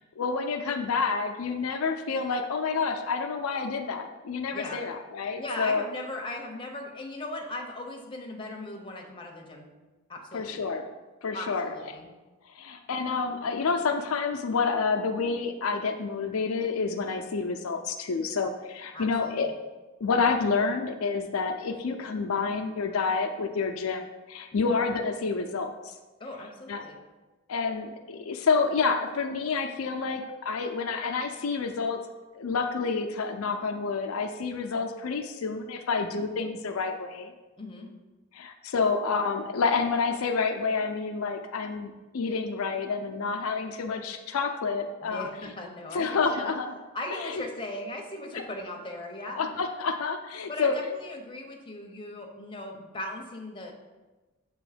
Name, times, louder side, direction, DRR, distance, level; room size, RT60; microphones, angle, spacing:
voice 1, 0.2-5.8 10.3-10.9 11.2-11.7 12.5-19.5 20.0-25.9 26.7-26.8 27.5-32.0 32.3-37.3 38.3-45.3 45.9-46.7 47.1-47.4 49.3-50.8, left 4 dB, 80° left, 5 dB, 0.5 m, -29 dB
voice 2, 4.5-4.8 5.4-9.7 10.1-10.6 11.3-12.1 18.9-19.6 24.5-24.7 26.2-27.0 37.6-37.9 45.0-46.5 46.9-49.6 50.5-53.7, left 1 dB, 25° left, 1 dB, 0.7 m, -38 dB
6.9 x 3.0 x 4.9 m, 1.2 s
head